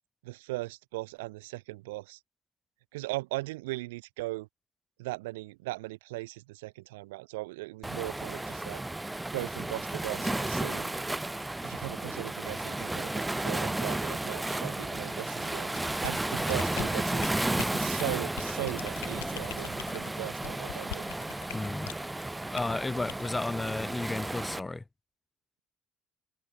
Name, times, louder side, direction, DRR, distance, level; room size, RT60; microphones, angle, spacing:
voice 1, 0.2-2.2 2.9-4.5 5.0-8.8 9.3-10.9 11.6-15.7 16.0-17.3 17.7-21.1, right 21 dB, 85° right, 1.4 m, -38 dB
Waves surf, 7.8-24.6, right 2 dB, 10° right, 2.6 m, -33 dB
sound 1, 15.7-22.1 22.6-22.7 23.1-23.3, left 20 dB, 85° left, 6.9 m, -42 dB
voice 2, 21.5-21.9 22.4-24.8, left 2 dB, 15° left, 1.0 m, -33 dB
hypercardioid pair, 65°, 0 cm